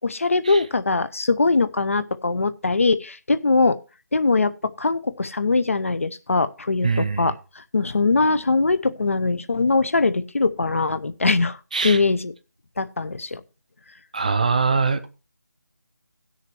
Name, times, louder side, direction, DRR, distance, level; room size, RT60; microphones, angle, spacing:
voice 1, 0.0-3.8 4.1-11.6 11.8-12.3 12.8-13.4, left 3 dB, 45° left, 0.7 m, -22 dB
voice 2, 6.8-7.3 11.7-12.0 14.1-15.1, right 4 dB, 25° right, 0.6 m, -22 dB
17.5 x 6.6 x 3.0 m
figure-of-eight pair, 160°, 10 cm